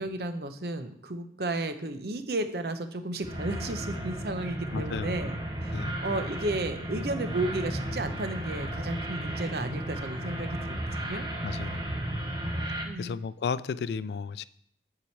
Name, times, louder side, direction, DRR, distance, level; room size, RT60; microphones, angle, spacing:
voice 1, 0.0-11.3 12.8-13.2, right 2 dB, 65° right, 0.8 m, -33 dB
sound 1, 3.2-12.8, right 1 dB, 25° right, 1.3 m, -34 dB
voice 2, 4.7-5.1 5.7-6.0 11.4-11.8 13.0-14.5, left 5 dB, 70° left, 0.3 m, -33 dB
10.0 x 4.8 x 4.6 m
head